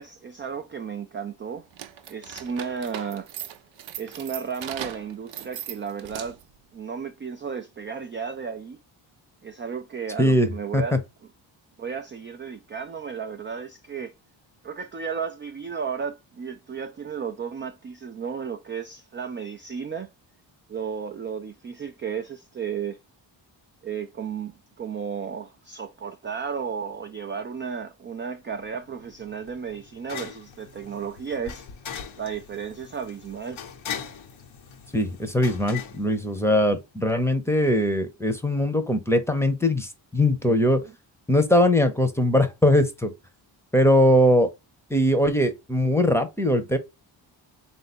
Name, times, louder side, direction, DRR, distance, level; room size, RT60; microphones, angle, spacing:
voice 1, 0.0-1.7 2.1-3.3 4.0-6.4 6.7-8.8 9.4-11.0 11.8-14.1 14.6-20.1 20.7-23.0 23.8-31.7 32.2-33.6 40.5-40.6 40.8-40.9, right 6 dB, 25° right, 0.4 m, -33 dB
sound 1, 1.7-6.6, right 11 dB, 70° right, 0.6 m, -38 dB
sound 2, 28.5-36.9, left 8 dB, 80° left, 1.1 m, -41 dB
voice 2, 34.9-40.8 41.3-43.1 43.7-44.5 44.9-46.8, left 1 dB, 5° left, 0.8 m, -21 dB
3.6 x 2.6 x 4.3 m
cardioid pair, 85°, 47 cm